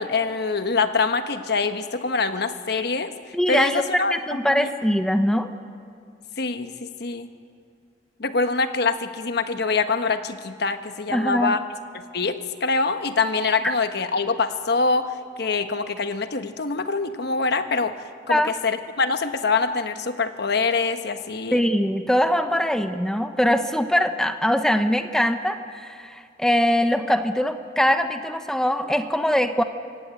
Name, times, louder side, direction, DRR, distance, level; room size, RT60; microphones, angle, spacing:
voice 1, 0.0-3.1 3.5-4.1 4.5-4.7 6.4-7.3 8.2-11.6 11.9-17.9 18.3-21.6, left 4 dB, 60° left, 8 dB, 1.2 m, -24 dB
voice 2, 3.3-3.8 4.1-5.5 11.1-11.5 18.3-18.5 21.5-29.6, equal, 5° left, 8 dB, 0.8 m, -22 dB
24.0 x 15.0 x 9.0 m, 2.4 s
head